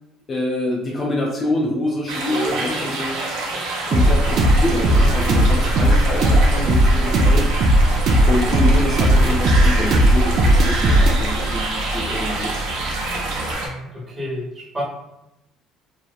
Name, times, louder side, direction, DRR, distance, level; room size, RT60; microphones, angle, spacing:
voice 1, 0.3-3.2 3.9-7.4 8.3-12.5, left 1 dB, 35° left, -3 dB, 0.5 m, -25 dB
sound 1, 2.1-13.7, right 2 dB, 85° right, 0.7 m, -27 dB
sound 2, 3.9-13.5, right 1 dB, 50° right, 0.4 m, -17 dB
voice 2, 13.6-14.8, equal, 20° right, -4 dB, 1.0 m, -31 dB
2.8 x 2.0 x 2.3 m, 0.86 s
cardioid pair, 120°, 0 cm